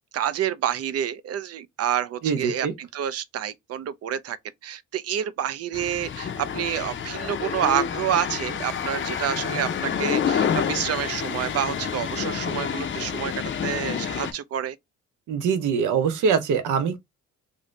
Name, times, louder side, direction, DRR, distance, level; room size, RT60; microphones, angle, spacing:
voice 1, 0.1-4.4 4.6-14.8, right 10 dB, 55° right, 0.5 m, -28 dB
voice 2, 2.2-2.7 15.3-17.0, right 6 dB, 80° right, 0.8 m, -23 dB
sound 1, 5.7-14.3, left 7 dB, 40° left, 0.6 m, -28 dB
2.7 x 2.6 x 3.1 m
cardioid pair, 90°, 30 cm